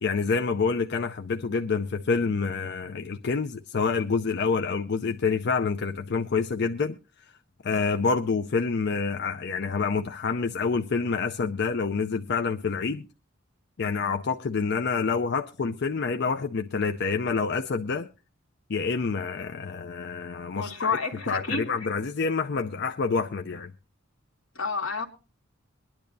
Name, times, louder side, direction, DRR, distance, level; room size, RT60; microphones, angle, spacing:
voice 1, 0.0-7.0 7.6-13.1 13.8-18.1 18.7-21.0 21.3-23.7, left 4 dB, 55° left, 0.5 m, -27 dB
voice 2, 20.6-21.7 24.6-25.1, left 4 dB, 80° left, 2.0 m, -29 dB
22.5 x 10.5 x 2.6 m
head